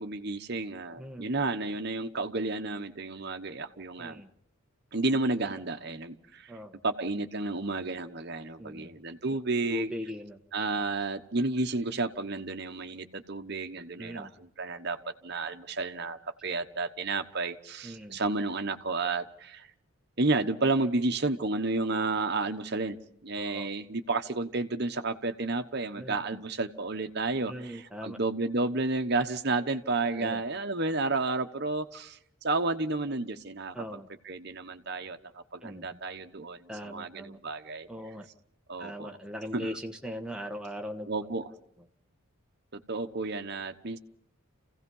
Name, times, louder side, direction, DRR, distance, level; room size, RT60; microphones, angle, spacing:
voice 1, 0.0-4.2 4.9-6.5 6.8-9.9 10.5-14.3 14.6-15.0 15.2-19.7 20.2-23.0 23.2-33.7 34.3-37.9 38.7-39.1 39.5-39.7 41.1-41.5 42.7-44.0, right 3 dB, 50° right, 7 dB, 1.1 m, -31 dB
voice 2, 1.0-1.3 4.0-4.3 6.5-6.7 8.6-8.9 9.3-9.4 9.7-10.4 14.0-14.3 17.8-18.2 23.3-23.7 26.0-26.4 27.5-28.2 30.1-30.4 33.7-34.1 35.6-36.0 36.7-37.4 37.9-38.3 38.8-41.1, equal, 5° right, 3 dB, 1.3 m, -40 dB
28.5 x 16.5 x 5.5 m, 0.74 s
head